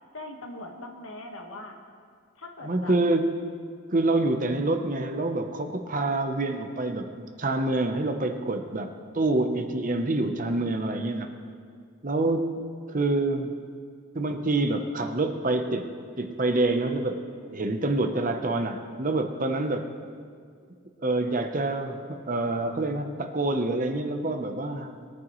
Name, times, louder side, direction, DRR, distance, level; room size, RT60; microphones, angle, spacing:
voice 1, 0.1-1.8 2.3-2.9, left 2 dB, 75° left, 2 dB, 1.5 m, -41 dB
voice 2, 2.6-3.3 3.9-8.9 9.1-11.3 12.0-12.5 12.9-13.5 14.1-17.2 17.5-19.9 21.0-24.9, right 2 dB, 40° right, 6 dB, 0.8 m, -27 dB
21.0 x 9.7 x 3.1 m, 2.1 s
head